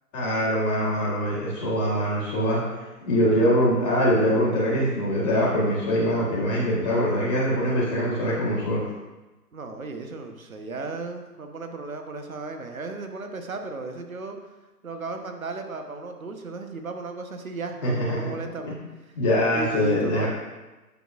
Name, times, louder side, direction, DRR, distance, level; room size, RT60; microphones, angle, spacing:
voice 1, 0.1-2.6 3.0-8.8 17.8-18.3 18.6-18.7 19.1-20.3, equal, 15° left, -15 dB, 1.5 m, -23 dB
voice 2, 9.5-14.4 14.8-18.8 19.5-20.3, right 3 dB, 60° right, 5 dB, 1.0 m, -35 dB
9.9 x 6.4 x 2.4 m, 1.1 s
figure-of-eight pair, 145°, 48 cm